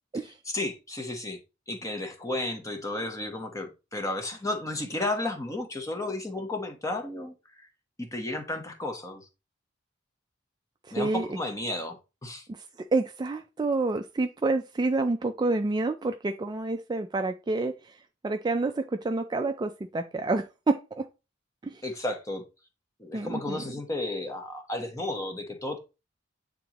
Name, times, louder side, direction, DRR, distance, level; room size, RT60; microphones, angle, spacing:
voice 1, 0.5-1.4 1.7-7.3 8.0-9.2 10.9-12.4 21.8-22.4 23.0-25.8, left 2 dB, 15° left, 1.0 m, -33 dB
voice 2, 11.0-11.4 12.5-17.9 18.2-21.1 21.6-21.8 23.1-23.6, right 3 dB, 20° right, 0.3 m, -28 dB
8.8 x 3.7 x 2.9 m
head